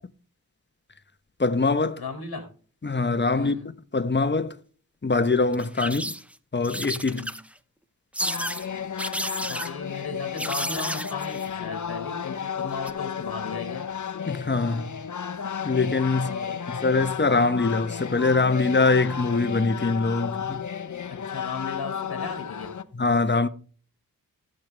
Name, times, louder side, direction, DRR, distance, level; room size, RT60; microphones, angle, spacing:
voice 1, 1.4-2.0 2.8-3.6 3.9-4.6 5.0-6.0 6.5-7.2 14.3-14.9 15.6-16.3 16.7-20.6 22.9-23.5, left 3 dB, 30° left, 1.0 m, -23 dB
voice 2, 2.0-2.5 3.3-3.7 5.8-6.0 7.0-7.3 9.4-13.9 16.1-16.6 21.1-22.7, left 4 dB, 85° left, 1.8 m, -36 dB
sound 1, 5.5-6.3 6.6-7.6 8.1-8.7 9.0-9.7 10.4-11.5 12.7-12.9, equal, 5° right, 0.7 m, -32 dB
sound 2, 8.2-22.8, left 7 dB, 55° left, 0.8 m, -33 dB
16.5 x 6.6 x 3.3 m
cardioid pair, 45°, 37 cm